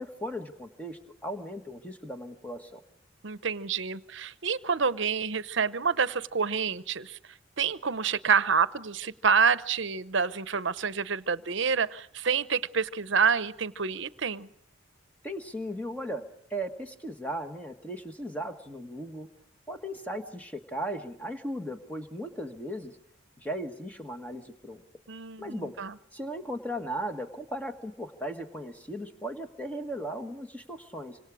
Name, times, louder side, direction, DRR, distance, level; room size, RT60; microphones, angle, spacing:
voice 1, 0.0-2.8 15.2-16.2 16.5-19.3 19.7-23.0 23.4-24.8 25.4-25.8 26.1-31.2, equal, 5° left, 6 dB, 1.5 m, -37 dB
voice 2, 3.2-7.2 7.6-14.5 25.1-25.9, right 6 dB, 70° right, 15 dB, 0.8 m, -28 dB
26.0 x 26.0 x 5.0 m, 0.70 s
head